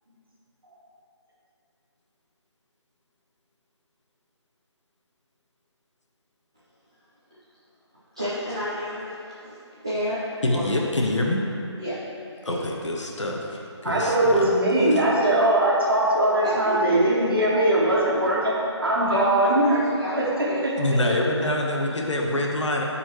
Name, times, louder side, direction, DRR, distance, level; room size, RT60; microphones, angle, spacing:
voice 1, 8.1-9.2 9.4-9.6 9.8-10.7 11.8-12.0 12.5-12.6 14.9-15.1 16.4-17.1 19.0-21.1, equal, 10° right, -14 dB, 0.5 m, -31 dB
voice 2, 10.4-11.5 12.4-14.5 14.9-15.0 20.8-22.8, left 1 dB, 85° left, 0 dB, 1.1 m, -26 dB
voice 3, 13.8-19.7 20.1-20.8 21.1-21.2, right 1 dB, 50° right, -5 dB, 1.6 m, -21 dB
11.0 x 4.3 x 3.0 m, 2.6 s
figure-of-eight pair, 175°, 15 cm